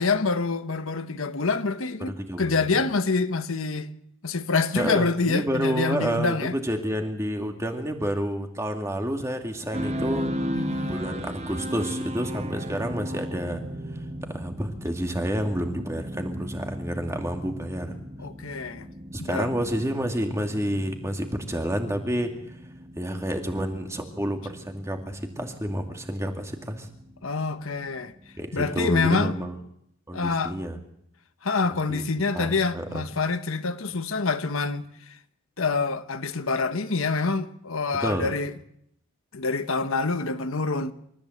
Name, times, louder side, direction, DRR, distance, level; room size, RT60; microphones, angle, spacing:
voice 1, 0.0-3.9 4.2-6.5 10.5-10.9 18.2-18.9 19.2-19.5 27.2-28.1 28.5-29.3 30.1-30.6 31.4-34.8 35.6-38.5 39.3-40.9, left 4 dB, 70° left, 1.2 m, -26 dB
voice 2, 2.0-2.7 4.8-10.3 10.9-13.6 14.3-18.0 19.1-22.3 23.0-26.9 28.4-29.6 30.1-30.8 31.9-32.0 32.3-33.0 37.9-38.3, equal, 15° right, 2.3 m, -29 dB
sound 1, 9.7-29.7, equal, 30° right, 1.5 m, -36 dB
28.0 x 14.5 x 7.9 m
head